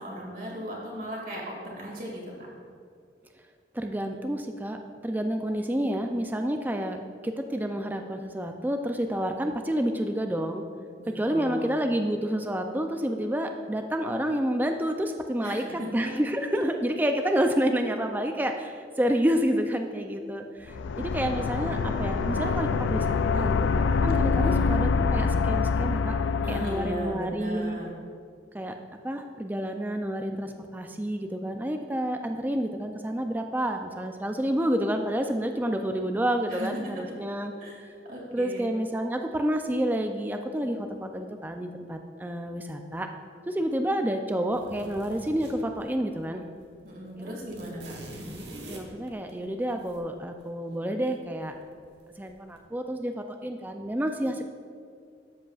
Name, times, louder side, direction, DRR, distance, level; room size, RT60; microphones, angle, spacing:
voice 1, 0.0-2.2 11.0-11.8 15.4-15.6 24.4-24.7 26.4-27.9 36.5-36.8 37.6-37.8 38.1-38.6 46.8-48.0, equal, 50° right, -2 dB, 2.2 m, -37 dB
voice 2, 3.7-10.6 11.1-26.1 26.5-27.8 28.5-28.7 29.0-37.5 38.3-43.1 43.5-46.4 47.2-47.4 48.7-51.5 52.2-54.4, equal, 10° right, 5 dB, 0.4 m, -29 dB
sound 1, 20.7-27.2, left 4 dB, 85° left, 0.3 m, -25 dB
sound 2, 44.5-46.2 46.5-46.7 46.9-50.0 51.4-52.0 52.3-52.6, right 1 dB, 70° right, 1.2 m, -44 dB
13.0 x 7.5 x 2.4 m, 2.2 s
head